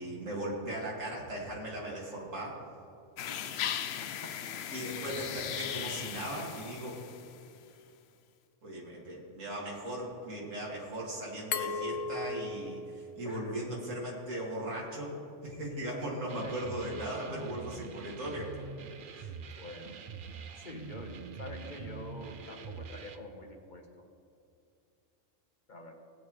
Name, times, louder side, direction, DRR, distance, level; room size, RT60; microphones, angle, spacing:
voice 1, 0.0-2.6 4.7-6.9 8.6-15.2 15.4-18.7 19.2-19.3, right 1 dB, 80° right, -4 dB, 2.6 m, -38 dB
sound 1, 3.2-7.5, left 9 dB, 65° left, 0.7 m, -38 dB
Glass, 11.5-14.3, left 4 dB, 85° left, 1.1 m, -38 dB
voice 2, 13.2-13.5 16.4-16.5 17.3-17.5 19.6-20.0 20.6-23.8 25.7-25.9, left 1 dB, 40° left, 2 dB, 1.3 m, -46 dB
sound 2, 16.3-23.2, right 6 dB, 55° right, 0.7 m, -45 dB
19.5 x 8.3 x 3.2 m, 2.6 s
omnidirectional pair, 1.3 m